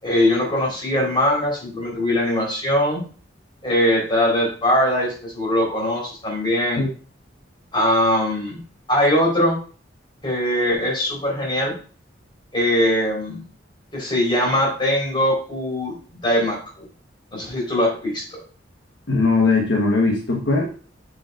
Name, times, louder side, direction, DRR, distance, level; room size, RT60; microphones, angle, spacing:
voice 1, 0.0-3.0 3.6-6.8 7.7-8.6 8.9-9.6 10.2-11.7 12.5-13.4 13.9-15.9 16.2-16.9 17.3-18.4, left 1 dB, 25° left, -2 dB, 4.1 m, -21 dB
voice 2, 19.1-20.6, left 3 dB, 70° left, -1 dB, 1.3 m, -19 dB
7.7 x 7.1 x 2.5 m, 0.39 s
head